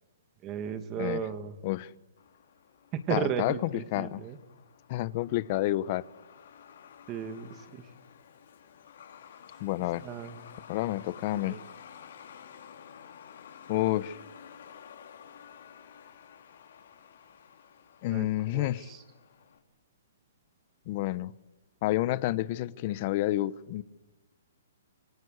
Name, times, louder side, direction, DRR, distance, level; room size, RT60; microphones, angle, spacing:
voice 1, 0.4-1.6 2.9-4.4 7.1-7.9 10.0-10.3 11.3-11.6 18.1-19.0, right 8 dB, 25° right, 8 dB, 2.4 m, -35 dB
Truck, 2.2-19.6, left 8 dB, 65° left, 5.0 m, -52 dB
voice 2, 3.1-4.2 4.9-6.1 9.6-10.0 10.7-11.6 13.7-14.2 18.0-18.9 20.9-21.3 21.8-23.8, left 16 dB, 35° left, 17 dB, 0.9 m, -29 dB
27.5 x 23.5 x 8.1 m, 1.2 s
hypercardioid pair, 155°, 0 cm